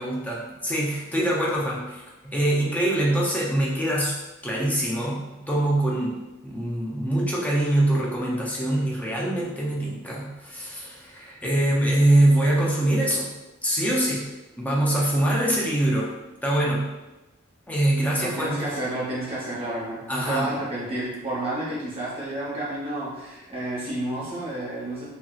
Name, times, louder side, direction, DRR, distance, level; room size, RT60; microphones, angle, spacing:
voice 1, 0.0-4.1 4.4-13.3 13.6-14.3 14.6-16.1 16.4-16.9 17.7-18.6 20.1-20.5, right 1 dB, 10° left, -4 dB, 0.5 m, -24 dB
voice 2, 18.2-25.0, right 1 dB, 30° right, -7 dB, 0.9 m, -30 dB
2.9 x 2.7 x 2.3 m, 1.1 s
head